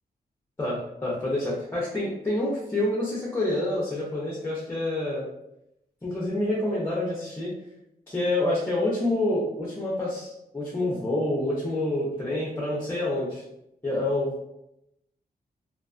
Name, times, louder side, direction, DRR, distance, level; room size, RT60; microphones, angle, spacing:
voice 1, 0.6-5.2 6.0-7.5 8.1-13.4 13.8-14.3, left 1 dB, 15° left, -5 dB, 0.5 m, -27 dB
2.4 x 2.3 x 2.3 m, 0.84 s
wide cardioid pair, 145°, 17 cm